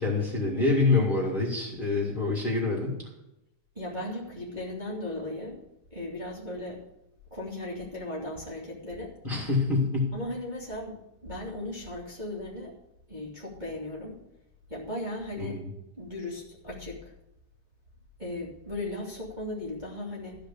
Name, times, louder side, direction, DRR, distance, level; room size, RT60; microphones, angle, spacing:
voice 1, 0.0-3.0 9.2-10.1 15.4-15.7, left 3 dB, 20° left, -4 dB, 2.1 m, -26 dB
voice 2, 3.7-5.6 5.9-6.8 7.3-9.1 10.1-11.0 11.2-12.7 13.1-14.2 14.7-15.5 16.0-17.1 18.2-20.4, left 1 dB, 15° right, -6 dB, 2.2 m, -36 dB
14.0 x 5.1 x 8.5 m, 0.87 s
omnidirectional pair, 3.5 m